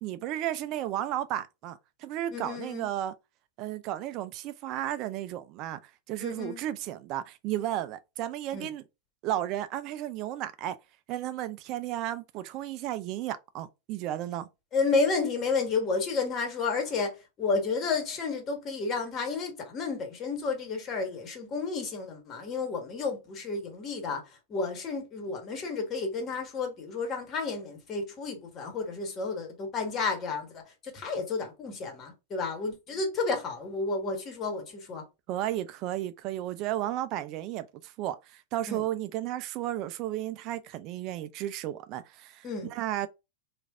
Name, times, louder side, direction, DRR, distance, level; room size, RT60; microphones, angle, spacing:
voice 1, 0.0-3.1 3.6-8.8 9.2-10.8 11.1-14.5 35.3-43.1, right 13 dB, 45° right, 0.3 m, -33 dB
voice 2, 2.3-2.9 6.2-6.6 8.5-8.7 14.7-17.1 17.4-24.2 24.5-35.0 38.7-38.8 42.4-42.7, left 4 dB, 35° left, 1.4 m, -31 dB
3.2 x 2.4 x 3.5 m
hypercardioid pair, 95°, 0 cm